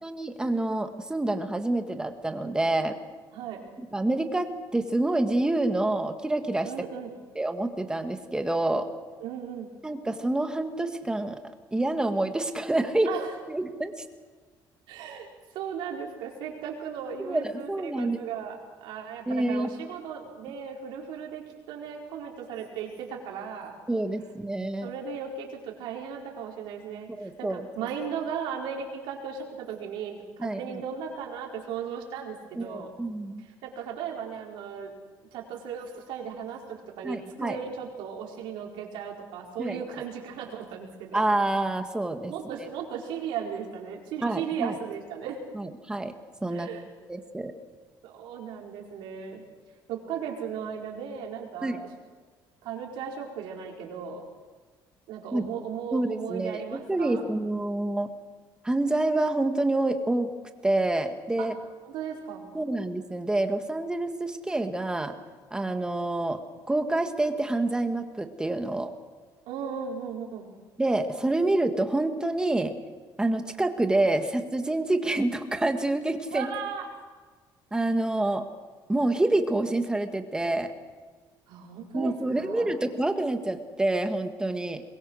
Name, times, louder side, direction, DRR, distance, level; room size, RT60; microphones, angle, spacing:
voice 1, 0.0-3.0 3.8-6.7 7.3-8.9 9.8-11.4 11.7-13.1 13.5-13.9 17.2-18.2 19.3-19.7 23.9-24.9 27.1-27.6 30.4-30.6 32.5-33.4 37.0-37.6 39.6-39.8 41.1-42.3 44.2-44.8 45.5-46.1 46.4-46.7 47.1-47.5 51.6-51.8 55.3-55.5 55.9-58.1 58.6-60.3 60.6-61.5 62.5-65.2 65.5-66.4 66.7-68.9 70.8-72.7 73.2-76.5 77.7-78.5 78.9-80.7 81.9-84.8, right 2 dB, 10° right, 7 dB, 1.7 m, -27 dB
voice 2, 3.3-3.6 6.6-7.1 9.2-9.7 13.0-13.3 14.9-15.3 15.5-23.8 24.8-32.9 33.4-34.9 35.3-41.2 42.3-45.4 46.5-46.8 48.0-49.4 49.9-51.9 52.6-54.2 55.1-57.2 61.4-61.5 61.8-62.5 69.5-70.5 76.3-76.9 81.5-82.7, right 7 dB, 90° right, 0 dB, 4.7 m, -36 dB
22.5 x 21.0 x 6.4 m, 1.4 s
cardioid pair, 135°, 8 cm